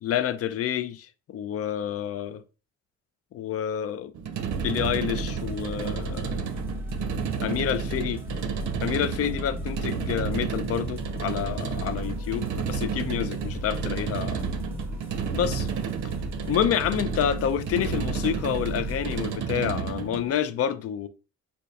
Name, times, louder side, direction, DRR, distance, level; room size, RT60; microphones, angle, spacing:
voice 1, 0.0-2.4 3.3-4.1 4.6-6.5 7.4-8.2 8.8-14.4 15.3-15.7 16.5-21.1, left 9 dB, 50° left, 0.4 m, -28 dB
sound 1, 4.1-20.3, right 7 dB, 70° right, 0.5 m, -32 dB
sound 2, 4.5-19.4, left 1 dB, 5° right, 0.8 m, -36 dB
4.5 x 2.3 x 2.5 m
cardioid pair, 90°, 30 cm